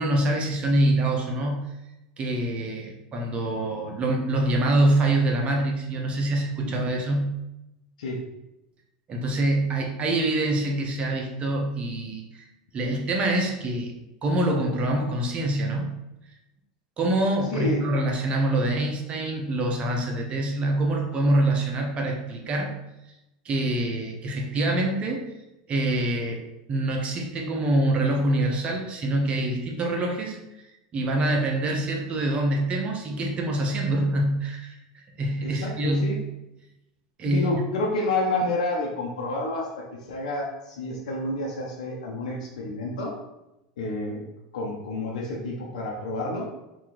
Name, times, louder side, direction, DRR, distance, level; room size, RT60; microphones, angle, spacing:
voice 1, 0.0-1.7 2.2-7.3 9.1-12.5 12.7-13.9 14.2-15.9 17.0-22.7 23.4-25.2 25.7-26.4 26.7-30.4 30.9-36.2 37.2-37.6, right 1 dB, 30° right, 1 dB, 0.8 m, -25 dB
voice 2, 17.5-17.9 35.4-36.2 37.2-43.1 43.8-44.2 44.5-46.5, left 2 dB, 90° left, -2 dB, 0.7 m, -29 dB
3.0 x 2.8 x 3.8 m, 0.93 s
supercardioid pair, 120°, 4 cm